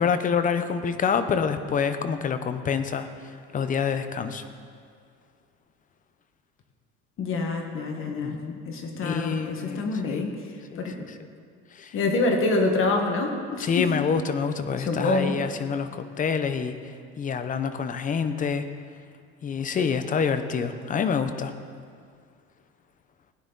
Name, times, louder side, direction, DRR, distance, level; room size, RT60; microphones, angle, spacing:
voice 1, 0.0-3.1 3.5-4.4 8.1-8.6 9.0-10.3 10.7-11.1 11.7-12.0 13.6-16.7 17.2-18.6 19.4-21.5, left 6 dB, 25° left, 10 dB, 0.7 m, -27 dB
voice 2, 7.2-8.4 8.7-10.3 10.8-11.0 11.9-14.0 14.8-15.3, left 3 dB, 45° left, 3 dB, 1.5 m, -26 dB
17.0 x 9.5 x 3.9 m, 2.2 s
cardioid pair, 135°, 29 cm